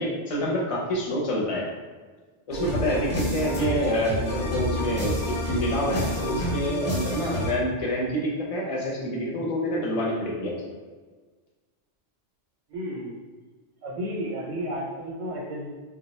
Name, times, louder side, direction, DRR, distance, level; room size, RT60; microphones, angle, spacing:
voice 1, 0.0-1.7 2.5-10.6, equal, 35° left, -3 dB, 0.6 m, -27 dB
sound 1, 2.5-7.5, equal, 15° left, 0.9 m, -28 dB
voice 2, 12.7-13.1 13.8-15.7, equal, 85° right, -5 dB, 1.0 m, -32 dB
3.7 x 2.2 x 3.1 m, 1.4 s
omnidirectional pair, 1.3 m